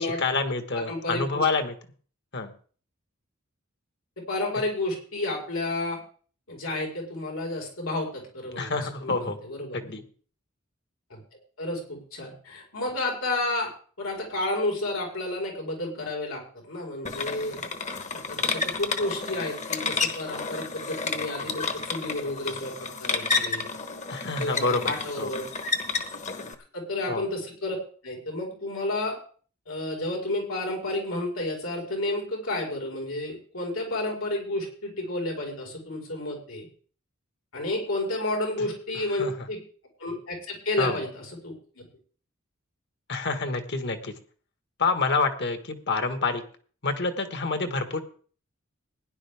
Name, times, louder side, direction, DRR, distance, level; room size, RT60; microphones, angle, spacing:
voice 1, 0.0-1.7 2.3-2.5 8.6-9.4 9.7-10.0 24.1-24.8 25.2-25.3 27.1-27.2 39.2-39.3 40.8-41.0 43.1-44.1 44.8-46.4 46.8-48.0, left 3 dB, 55° left, 8 dB, 1.5 m, -27 dB
voice 2, 0.7-1.4 4.2-6.0 6.5-9.9 11.1-11.2 11.6-13.7 14.0-17.6 18.1-23.7 24.4-25.5 26.4-26.5 26.7-27.8 28.0-29.2 29.7-36.7 37.5-39.6 40.0-41.9, left 2 dB, 90° left, -1 dB, 4.8 m, -31 dB
sound 1, 17.0-26.5, left 4 dB, 35° left, 1.1 m, -31 dB
16.5 x 10.5 x 3.5 m, 0.43 s
head